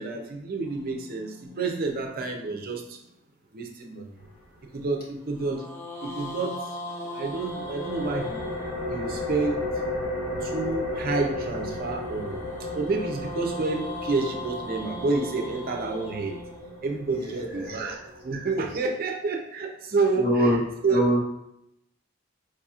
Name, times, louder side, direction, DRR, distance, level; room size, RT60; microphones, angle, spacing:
voice 1, 0.0-2.8 3.5-4.0 4.7-5.6 6.0-6.5 7.1-8.4 8.9-9.6 10.4-12.4 12.7-16.4 16.8-20.6 20.8-21.0, right 3 dB, 50° right, 2 dB, 0.5 m, -29 dB
sound 1, 0.6-3.0 5.3-9.5 11.6-17.8, equal, 10° left, 0.6 m, -40 dB
sound 2, 7.3-18.7, left 2 dB, 70° left, 1.1 m, -34 dB
voice 2, 17.1-17.8 20.2-20.6 20.9-21.2, equal, 55° left, -6 dB, 1.4 m, -24 dB
4.6 x 2.8 x 2.4 m, 0.80 s
head